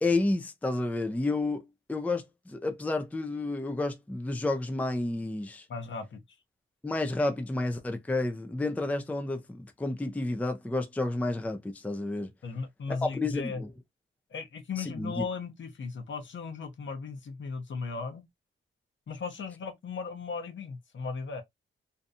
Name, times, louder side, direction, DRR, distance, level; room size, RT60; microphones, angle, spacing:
voice 1, 0.0-5.7 6.8-12.3 13.1-13.7 14.8-15.2, left 2 dB, 5° left, 0.4 m, -31 dB
voice 2, 5.7-6.2 12.4-13.6 14.3-18.2 19.1-21.4, left 5 dB, 65° left, 0.8 m, -37 dB
2.6 x 2.2 x 2.6 m
cardioid pair, 80°, 21 cm